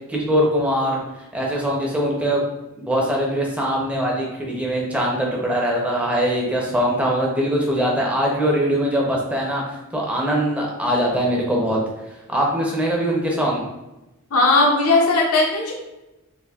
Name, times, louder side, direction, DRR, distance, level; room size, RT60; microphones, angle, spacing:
voice 1, 0.1-1.0 1.3-2.4 2.8-11.8 12.3-13.6, equal, 5° right, -3 dB, 0.6 m, -22 dB
voice 2, 14.3-15.7, left 2 dB, 70° left, -1 dB, 0.6 m, -17 dB
4.1 x 2.6 x 2.3 m, 0.98 s
head